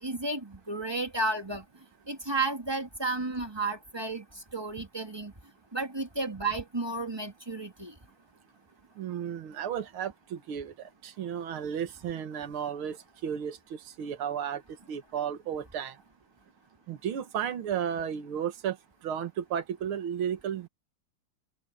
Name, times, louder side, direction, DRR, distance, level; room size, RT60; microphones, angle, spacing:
voice 1, 0.0-1.6 2.1-4.2 4.5-5.3 5.7-7.9, right 3 dB, 15° right, 1.7 m, -32 dB
voice 2, 9.0-14.6 14.9-16.0 16.9-18.8 19.0-20.7, right 8 dB, 75° right, 2.2 m, -33 dB
open air
omnidirectional pair, 2.4 m